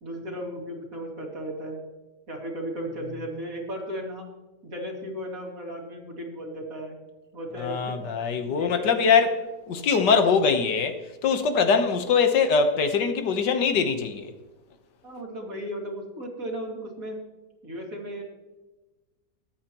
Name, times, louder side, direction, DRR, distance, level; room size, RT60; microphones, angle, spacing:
voice 1, 0.0-1.8 2.3-4.3 4.6-7.0 7.3-7.9 8.4-9.0 15.0-17.2 17.6-18.2, equal, 55° right, 2.8 m, -35 dB
voice 2, 7.6-9.4 9.7-14.3, left 5 dB, 90° left, 1.8 m, -22 dB
22.0 x 8.8 x 3.0 m
omnidirectional pair, 1.8 m